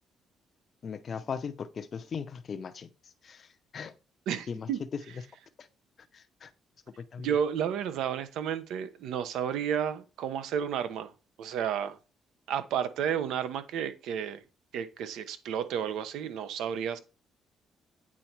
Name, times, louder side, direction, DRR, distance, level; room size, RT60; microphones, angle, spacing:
voice 1, 0.8-3.9 4.5-4.7 5.6-5.7 6.1-6.5 7.0-7.3, left 6 dB, 50° left, 0.6 m, -39 dB
voice 2, 4.3-4.8 7.2-11.1 11.4-12.0 12.5-14.4 14.7-17.0, right 8 dB, 85° right, 0.9 m, -32 dB
8.6 x 4.1 x 4.5 m
cardioid pair, 90°, 0 cm